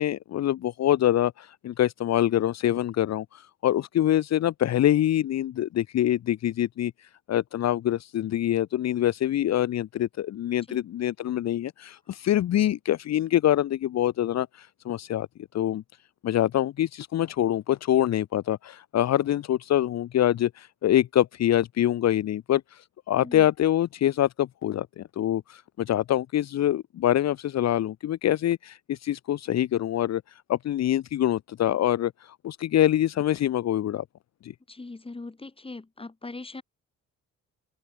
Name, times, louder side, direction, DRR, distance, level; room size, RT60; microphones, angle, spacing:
voice 1, 0.0-6.9 7.3-15.3 15.5-15.8 16.2-30.2 30.5-34.0 34.4-34.5, left 12 dB, 60° left, 0.9 m, -25 dB
voice 2, 34.7-36.6, left 3 dB, 20° left, 3.2 m, -40 dB
open air
cardioid pair, 90°, 30 cm